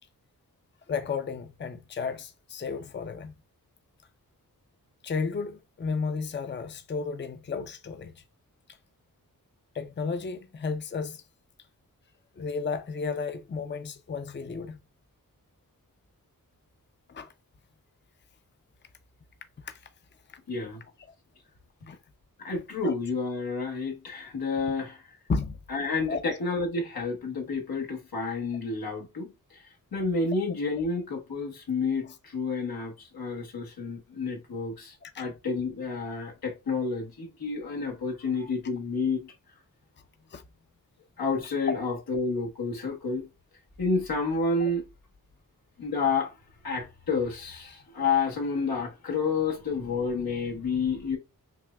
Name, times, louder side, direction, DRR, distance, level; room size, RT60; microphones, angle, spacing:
voice 1, 0.9-3.3 5.0-8.2 9.7-11.2 12.4-14.8 17.1-17.3 19.6-19.9 20.3-20.4 21.0-21.1 21.9-22.0 22.8-22.9 25.3-25.6 26.1-26.4 32.0-32.2 35.0-35.2 40.3-40.4 44.6-44.7, left 5 dB, 30° left, 0.5 m, -33 dB
voice 2, 20.5-20.8 22.4-25.0 25.7-29.6 29.9-39.3 41.2-43.3 43.8-44.8 45.8-46.3 46.6-51.2, left 4 dB, 90° left, 1.1 m, -30 dB
5.8 x 2.1 x 2.3 m
wide cardioid pair, 65°, 35 cm